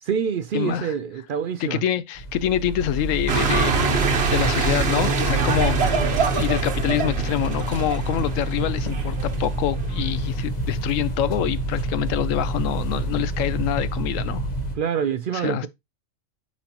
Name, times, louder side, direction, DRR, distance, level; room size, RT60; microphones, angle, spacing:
voice 1, 0.0-1.8 14.7-15.7, right 7 dB, 75° right, 0.4 m, -26 dB
voice 2, 0.5-0.9 1.6-4.0 4.3-14.5 15.3-15.7, left 11 dB, 75° left, 0.9 m, -26 dB
sound 1, 2.2-14.7, right 1 dB, 30° left, 1.3 m, -28 dB
sound 2, 3.3-10.1, right 5 dB, 50° right, 1.2 m, -24 dB
9.3 x 4.2 x 2.8 m
omnidirectional pair, 1.4 m